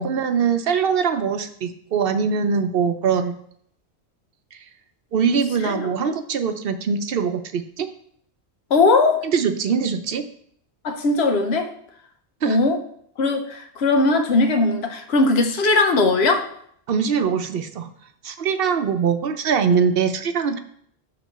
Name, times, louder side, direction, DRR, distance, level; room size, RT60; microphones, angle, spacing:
voice 1, 0.0-3.4 4.5-4.6 5.1-7.9 9.2-10.2 12.4-12.6 16.9-17.9 18.2-20.6, right 6 dB, 65° right, 8 dB, 0.8 m, -22 dB
voice 2, 8.7-9.2 10.8-11.7 12.5-12.8 13.2-16.5, left 3 dB, 75° left, 6 dB, 1.1 m, -19 dB
9.0 x 3.0 x 6.5 m, 0.66 s
omnidirectional pair, 1.1 m